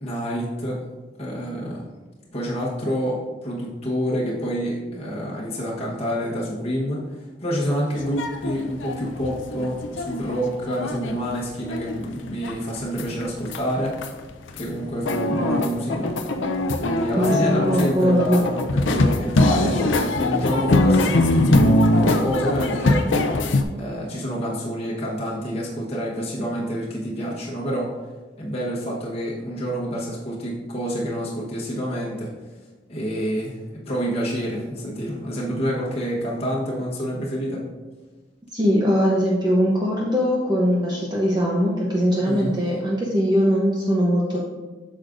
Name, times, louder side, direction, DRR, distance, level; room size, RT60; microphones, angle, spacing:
voice 1, 0.0-0.9 1.2-1.8 2.3-7.1 7.4-14.0 14.5-16.1 16.8-23.1 23.8-27.9 28.4-32.3 32.9-37.7 42.2-42.6, equal, 30° left, -5 dB, 1.1 m, -27 dB
sound 1, 8.0-11.2 11.7-13.6 13.9-14.7 15.1-23.6, left 2 dB, 85° left, 0.6 m, -22 dB
voice 2, 17.1-18.4 38.5-44.4, equal, 20° right, -4 dB, 0.8 m, -21 dB
8.2 x 6.4 x 2.6 m, 1.3 s
head